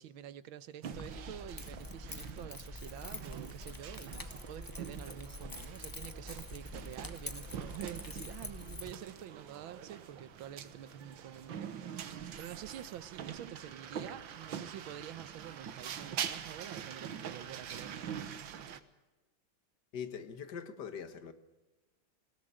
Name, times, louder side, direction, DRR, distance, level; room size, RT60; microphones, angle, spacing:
voice 1, 0.0-18.4, right 10 dB, 90° right, 1.7 m, -48 dB
sound 1, 0.8-18.8, right 8 dB, 75° right, 1.9 m, -44 dB
Keys jangling, 0.9-8.9, left 2 dB, 15° left, 1.1 m, -46 dB
voice 2, 19.9-21.3, left 7 dB, 60° left, 2.0 m, -42 dB
20.5 x 17.5 x 8.9 m
omnidirectional pair, 2.1 m